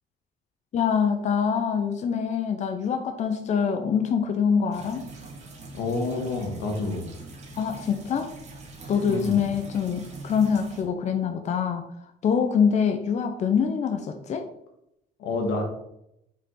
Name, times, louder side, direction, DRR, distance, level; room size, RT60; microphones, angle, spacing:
voice 1, 0.7-5.1 7.6-8.3 8.9-11.9 12.2-14.5, left 6 dB, 45° left, 6 dB, 0.6 m, -25 dB
sound 1, 4.7-10.8, right 2 dB, 40° right, 1.8 m, -43 dB
voice 2, 5.7-7.1 9.0-9.4 15.2-15.6, left 3 dB, 90° left, 2 dB, 1.6 m, -28 dB
5.6 x 4.9 x 3.8 m, 0.81 s
cardioid pair, 110°, 17 cm